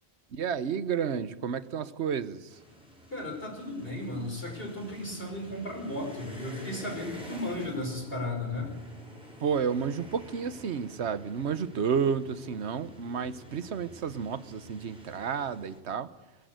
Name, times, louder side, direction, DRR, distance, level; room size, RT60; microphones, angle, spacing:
voice 1, 0.3-2.6 9.4-16.1, right 7 dB, 90° right, 14 dB, 1.2 m, -31 dB
sound 1, 2.5-15.8, equal, 5° right, 5.1 m, -49 dB
voice 2, 3.1-8.7, left 1 dB, 60° left, 1 dB, 5.6 m, -35 dB
21.0 x 16.5 x 8.0 m, 1.1 s
omnidirectional pair, 1.1 m